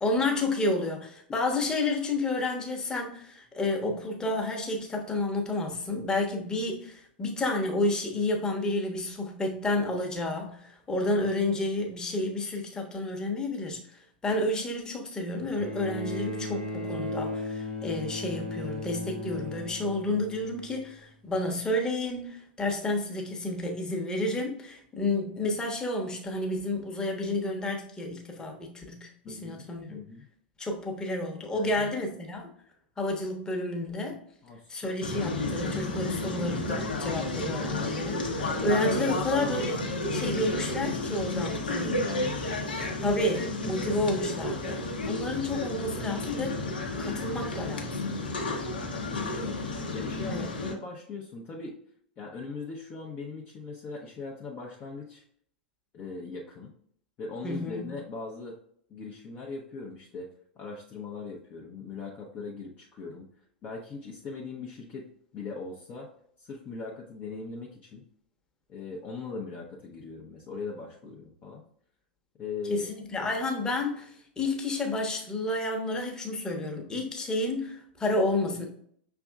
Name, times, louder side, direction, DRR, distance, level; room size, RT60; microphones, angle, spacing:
voice 1, 0.0-30.0 30.6-32.5 33.0-34.2 34.7-42.0 43.0-46.6 47.0-48.1 50.3-50.5 57.4-57.9 72.7-78.7, left 2 dB, 15° left, 1 dB, 1.0 m, -30 dB
Bowed string instrument, 15.5-21.0 22.1-22.2, left 2 dB, 90° right, 1.0 m, -36 dB
voice 2, 29.2-30.3 31.5-31.9 34.4-35.0 41.8-42.5 49.0-49.6 49.9-51.8 52.2-55.2 55.9-56.7 57.2-58.6 58.9-60.3 60.5-63.3 63.6-66.1 66.4-68.0 68.7-71.6 72.4-72.9, left 4 dB, 30° left, -2 dB, 0.7 m, -40 dB
sound 1, 35.0-50.7, left 2 dB, 70° left, 0.9 m, -32 dB
5.9 x 3.5 x 2.3 m, 0.64 s
figure-of-eight pair, 95°, 5 cm